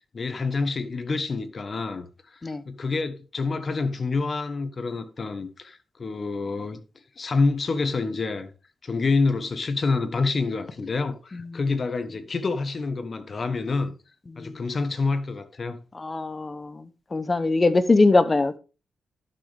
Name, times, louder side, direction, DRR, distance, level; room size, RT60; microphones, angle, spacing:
voice 1, 0.1-2.1 2.3-2.4 2.6-6.8 7.2-8.5 8.8-13.9 14.4-15.8, left 3 dB, 45° left, 1.3 m, -27 dB
voice 2, 15.9-16.8 17.1-18.6, left 3 dB, 30° left, 1.1 m, -22 dB
11.5 x 6.7 x 3.5 m
cardioid pair, 85°, 0 cm